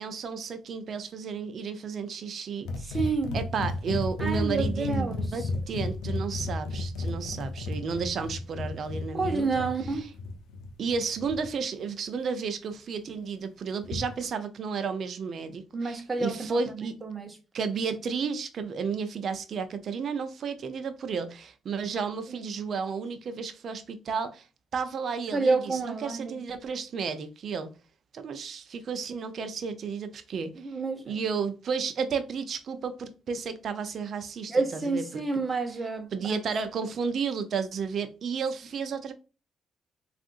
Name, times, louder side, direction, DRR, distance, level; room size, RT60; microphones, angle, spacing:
voice 1, 0.0-10.1 10.8-17.0 17.5-24.5 24.7-27.7 28.1-30.5 31.1-35.2 36.1-39.1, right 5 dB, 55° right, 0.5 m, -32 dB
sound 1, 2.6-11.5 13.8-14.2, left 3 dB, 90° left, 0.6 m, -33 dB
voice 2, 2.9-3.4 4.2-5.5 9.1-10.0 15.7-17.3 22.3-22.4 25.3-26.4 30.6-31.1 34.5-36.4, right 3 dB, 25° right, 0.9 m, -29 dB
3.6 x 2.5 x 2.4 m
cardioid pair, 90°, 0 cm